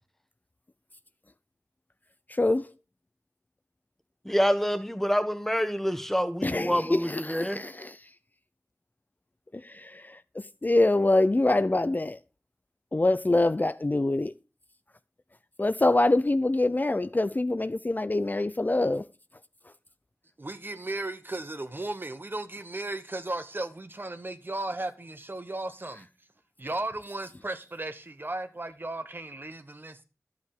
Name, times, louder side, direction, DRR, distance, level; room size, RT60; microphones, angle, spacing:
voice 1, 2.3-2.7 6.4-8.0 9.6-10.2 10.6-12.2 12.9-14.3 15.6-19.0, left 2 dB, 35° left, 0.5 m, -25 dB
voice 2, 4.2-7.6, equal, 5° left, 1.3 m, -27 dB
voice 3, 20.4-26.1 26.6-30.0, right 2 dB, 40° right, 1.1 m, -35 dB
11.5 x 8.3 x 4.9 m
wide cardioid pair, 50°, 5 cm